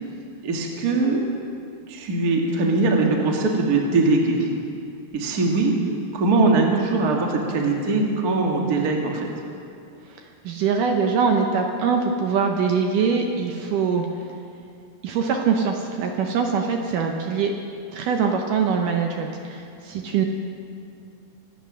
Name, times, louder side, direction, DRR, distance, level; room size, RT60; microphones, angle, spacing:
voice 1, 0.4-1.2 1.9-4.5 5.1-5.7 6.1-9.3, right 3 dB, 40° right, 0 dB, 1.3 m, -21 dB
voice 2, 10.1-14.1 15.0-17.5 17.9-20.3, right 5 dB, 70° right, 3 dB, 2.2 m, -23 dB
24.5 x 9.0 x 6.2 m, 2.5 s
omnidirectional pair, 4.4 m